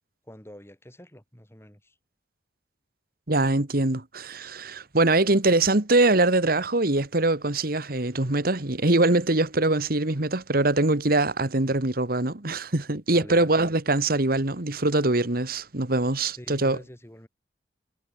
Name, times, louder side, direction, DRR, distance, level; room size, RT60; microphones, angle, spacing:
voice 1, 0.2-2.0 13.1-13.6 16.4-17.3, equal, 15° left, 6.5 m, -45 dB
voice 2, 3.3-16.8, right 2 dB, 55° right, 1.9 m, -23 dB
head